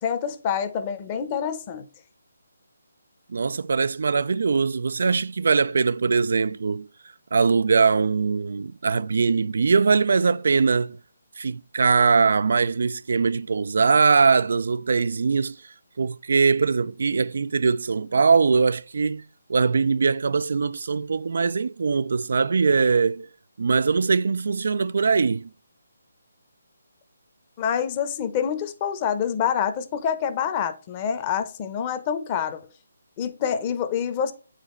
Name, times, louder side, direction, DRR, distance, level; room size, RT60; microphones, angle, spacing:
voice 1, 0.0-1.8 27.6-32.6 33.2-34.3, left 8 dB, 25° left, 0.9 m, -26 dB
voice 2, 3.3-6.9 7.3-11.0 11.4-15.6 16.0-19.2 19.5-23.3 23.6-25.5, right 5 dB, 65° right, 0.3 m, -21 dB
8.8 x 5.0 x 3.2 m
hypercardioid pair, 160°, 0 cm